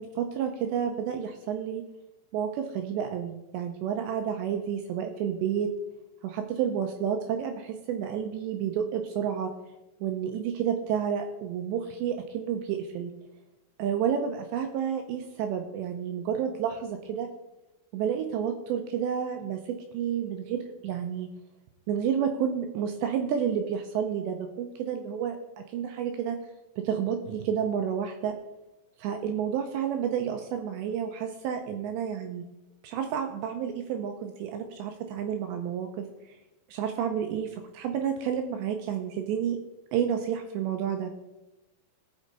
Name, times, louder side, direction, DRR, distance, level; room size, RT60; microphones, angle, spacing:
voice 1, 0.0-1.8 2.3-5.7 6.2-9.5 10.0-13.1 13.8-17.3 17.9-21.3 21.9-26.4 26.8-28.3 29.0-32.5 32.8-36.4 36.7-39.6 39.9-41.1, right 8 dB, 80° right, 6 dB, 2.6 m, -30 dB
18.5 x 6.3 x 3.9 m, 1.0 s
omnidirectional pair, 5.5 m